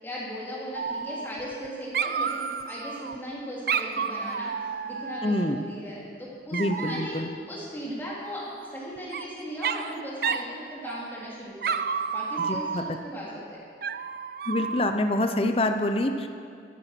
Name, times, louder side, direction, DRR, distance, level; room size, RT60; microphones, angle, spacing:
voice 1, 0.0-7.1 7.5-13.6, equal, 10° left, -6 dB, 3.1 m, -38 dB
Dog, 0.7-1.7 1.9-3.2 3.7-5.7 6.5-7.2 8.6-9.2 9.6-9.9 10.2-10.5 10.9-11.3 11.6-13.1 13.8-15.0, right 6 dB, 55° right, 0.4 m, -31 dB
voice 2, 5.2-5.6 6.5-7.3 12.5-12.8 14.5-16.3, left 1 dB, 30° left, 7 dB, 0.6 m, -26 dB
14.5 x 10.0 x 5.9 m, 2.3 s
head